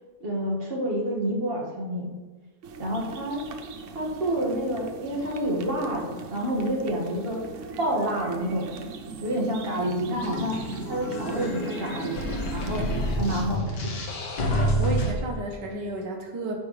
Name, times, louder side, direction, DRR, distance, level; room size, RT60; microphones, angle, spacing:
voice 1, 0.2-2.1 2.8-3.5 3.9-7.4 7.8-8.7 9.2-10.6 10.9-12.9 13.2-14.0, right 1 dB, 35° right, -3 dB, 1.9 m, -28 dB
sound 1, 2.6-13.6, right 4 dB, 60° right, 0.9 m, -39 dB
sound 2, 10.1-15.1, equal, 90° left, 1.9 m, -28 dB
voice 2, 14.5-16.6, right 2 dB, 85° right, 2 dB, 1.6 m, -32 dB
14.0 x 5.1 x 3.2 m, 1.3 s
omnidirectional pair, 1.8 m